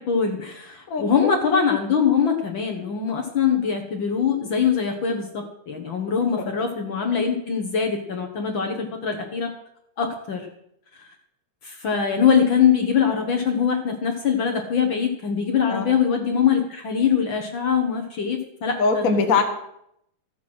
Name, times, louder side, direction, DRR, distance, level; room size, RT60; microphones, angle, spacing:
voice 1, 0.0-9.5 10.0-10.5 11.6-19.2, left 7 dB, 70° left, 3 dB, 1.1 m, -23 dB
voice 2, 0.9-1.3 15.7-15.9 18.8-19.4, left 4 dB, 85° left, 4 dB, 0.7 m, -21 dB
14.0 x 8.2 x 6.2 m, 0.76 s
omnidirectional pair, 4.1 m